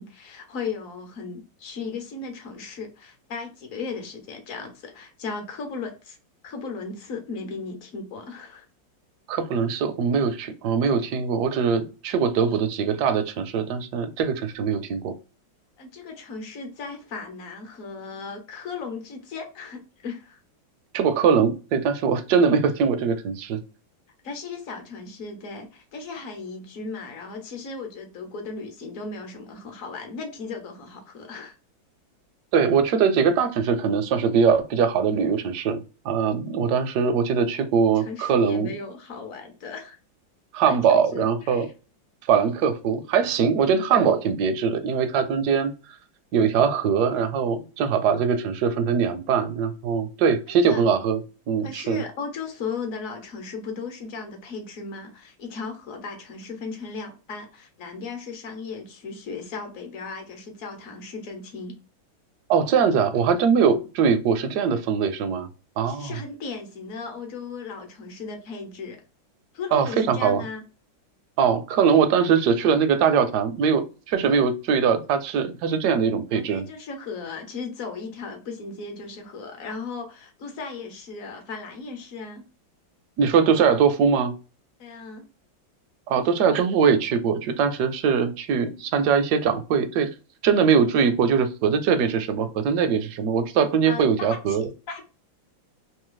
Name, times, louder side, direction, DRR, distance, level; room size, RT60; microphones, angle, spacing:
voice 1, 0.0-6.2 6.4-8.7 15.8-20.4 24.2-31.6 37.9-40.0 40.7-41.7 50.7-50.8 51.6-61.7 65.8-69.0 69.5-70.6 76.3-82.4 84.8-85.2 93.9-95.1, left 4 dB, 60° left, 1.0 m, -36 dB
voice 2, 9.3-15.1 20.9-23.6 32.5-35.8 36.0-38.7 40.5-41.7 42.3-45.7 46.3-51.2 51.5-52.0 62.5-65.5 65.8-66.2 69.7-70.4 71.4-76.7 83.2-84.3 86.1-90.1 90.4-94.7, right 6 dB, 70° right, 1.0 m, -22 dB
3.1 x 2.7 x 3.8 m
omnidirectional pair, 2.1 m